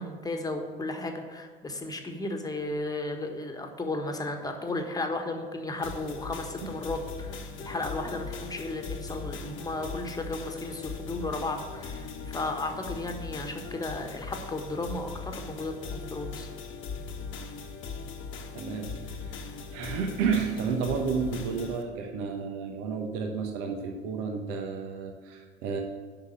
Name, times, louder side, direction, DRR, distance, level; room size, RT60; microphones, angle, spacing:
voice 1, 0.0-16.5, left 2 dB, 10° left, 4 dB, 1.4 m, -34 dB
sound 1, 5.8-21.8, left 5 dB, 40° left, 1.2 m, -39 dB
voice 2, 18.5-25.8, right 5 dB, 60° right, 4 dB, 1.2 m, -31 dB
7.7 x 5.8 x 7.6 m, 1.5 s
figure-of-eight pair, 65°, 29 cm